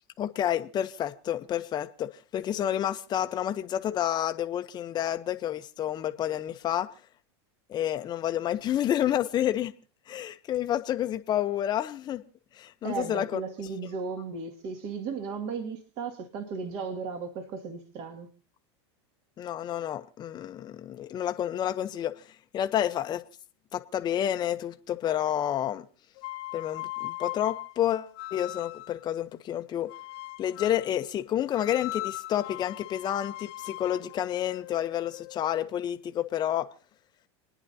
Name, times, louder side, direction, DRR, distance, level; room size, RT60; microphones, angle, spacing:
voice 1, 0.2-6.9 7.7-9.7 10.1-12.2 12.5-13.4 19.4-23.2 23.7-25.9 26.5-29.9 30.4-36.7, left 11 dB, 30° left, 0.8 m, -29 dB
voice 2, 12.8-18.3, right 5 dB, 50° right, 2.2 m, -35 dB
sound 1, 26.2-29.0 29.9-30.9 31.5-35.5, left 16 dB, 60° left, 0.8 m, -39 dB
29.5 x 9.9 x 2.8 m
supercardioid pair, 120°, 14 cm